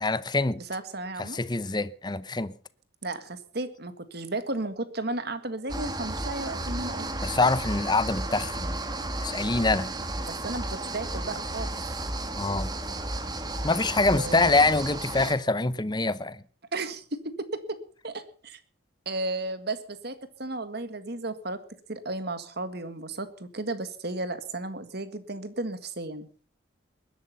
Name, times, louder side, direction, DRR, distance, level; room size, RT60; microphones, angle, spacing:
voice 1, 0.0-0.6 1.2-2.5 7.2-8.8 9.2-9.9 12.4-12.7 13.6-16.4, left 3 dB, 20° left, 0.7 m, -25 dB
voice 2, 0.7-1.4 3.0-7.1 10.3-12.0 14.2-14.6 16.7-17.8 18.0-18.6 19.1-21.6 21.9-26.3, right 2 dB, 50° right, 1.7 m, -34 dB
sound 1, 5.7-15.3, right 2 dB, 20° right, 1.6 m, -33 dB
20.5 x 11.5 x 5.5 m
head